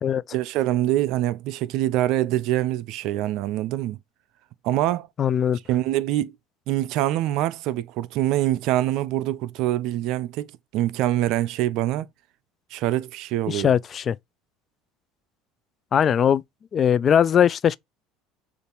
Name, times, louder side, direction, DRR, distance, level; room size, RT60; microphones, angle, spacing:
voice 1, 0.3-4.0 4.6-5.1 5.7-6.3 6.7-12.1 12.7-13.7, right 14 dB, 65° right, 0.4 m, -24 dB
voice 2, 5.2-5.6 13.5-14.1 15.9-16.4 16.7-17.8, left 8 dB, 40° left, 0.3 m, -20 dB
6.7 x 2.5 x 2.9 m
hypercardioid pair, 80°, 0 cm